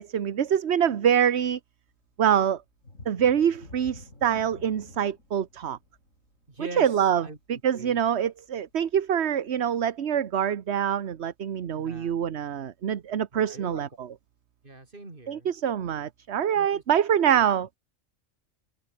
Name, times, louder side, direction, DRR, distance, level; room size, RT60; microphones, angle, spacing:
voice 1, 0.0-1.6 2.2-2.6 3.1-5.8 6.6-14.1 15.3-17.7, right 9 dB, 60° right, 1.2 m, -25 dB
sound 1, 2.8-8.3 8.7-8.9 9.4-9.5, left 2 dB, 85° left, 5.2 m, -49 dB
voice 2, 6.5-6.9 7.2-7.4 7.7-8.0 11.7-12.1 13.3-13.8 14.6-15.5 16.6-16.8 17.3-17.4, right 2 dB, 45° right, 3.4 m, -42 dB
omnidirectional pair, 1.3 m